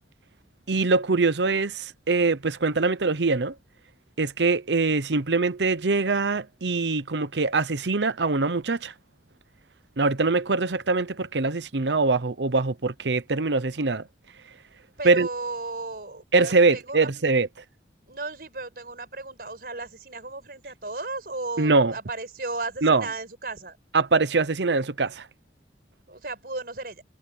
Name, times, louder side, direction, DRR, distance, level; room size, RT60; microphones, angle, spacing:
voice 1, 0.7-3.5 4.2-8.9 10.0-14.0 15.0-15.3 16.3-17.5 21.6-21.9 22.8-23.0 23.9-25.3, right 3 dB, 80° right, 0.9 m, -23 dB
voice 2, 15.0-17.1 18.1-23.8 26.1-27.0, right 3 dB, 55° right, 5.2 m, -35 dB
head